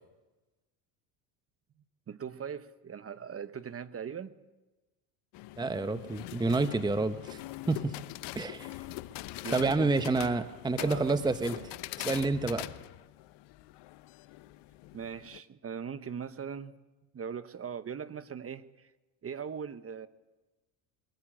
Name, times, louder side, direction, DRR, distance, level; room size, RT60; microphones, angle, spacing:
voice 1, 2.1-4.4 9.4-9.9 10.8-11.2 14.9-16.7 17.1-18.9 19.2-20.1, right 7 dB, 30° right, 1.2 m, -40 dB
sound 1, 5.3-15.4, left 17 dB, 55° left, 1.0 m, -43 dB
voice 2, 5.6-7.4 7.7-7.9 8.3-8.7 9.5-11.7 12.0-12.7, right 3 dB, 10° right, 1.0 m, -29 dB
22.0 x 14.5 x 8.8 m
hypercardioid pair, 80°, 49 cm